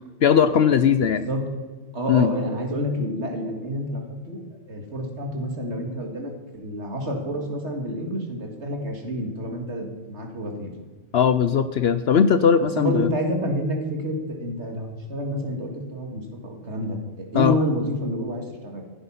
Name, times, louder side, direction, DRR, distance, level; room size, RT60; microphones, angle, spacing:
voice 1, 0.2-1.2 2.1-2.3 11.1-13.1 17.3-17.6, left 7 dB, 60° left, 12 dB, 0.8 m, -19 dB
voice 2, 1.9-4.4 4.7-10.7 12.7-18.9, equal, 60° right, 2 dB, 2.4 m, -28 dB
15.5 x 9.6 x 5.7 m, 1.3 s
omnidirectional pair, 1.3 m